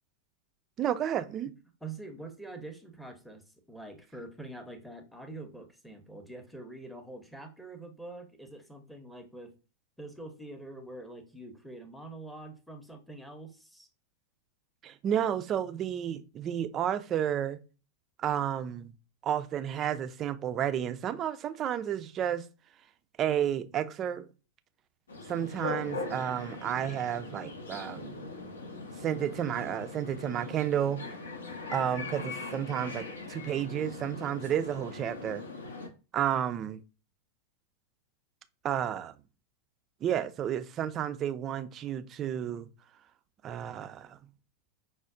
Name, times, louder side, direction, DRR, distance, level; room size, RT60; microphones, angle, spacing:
voice 1, 0.8-1.5 14.8-17.6 18.2-18.9 19.2-22.4 23.2-24.3 25.3-28.2 29.0-31.0 31.7-35.4 36.1-36.8 38.6-39.1 40.0-42.7 43.4-44.2, right 10 dB, 30° right, 0.3 m, -31 dB
voice 2, 1.8-3.4 3.7-9.5 10.0-13.9, right 2 dB, ahead, 0.7 m, -45 dB
sound 1, 25.1-35.9, left 3 dB, 70° left, 0.6 m, -41 dB
5.7 x 2.0 x 2.5 m
figure-of-eight pair, 90°, 0 cm